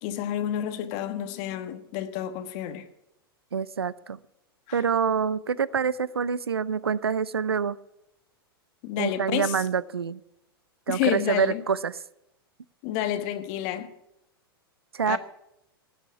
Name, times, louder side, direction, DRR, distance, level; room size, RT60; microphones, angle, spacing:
voice 1, 0.0-2.9 4.7-4.8 8.8-9.6 10.9-11.6 12.8-13.9 15.1-15.2, left 11 dB, 45° left, 1.4 m, -29 dB
voice 2, 3.5-4.2 4.7-7.8 9.0-10.2 10.9-12.0 14.9-15.2, right 6 dB, 85° right, 0.5 m, -26 dB
16.0 x 6.4 x 10.0 m
hypercardioid pair, 100°, 13 cm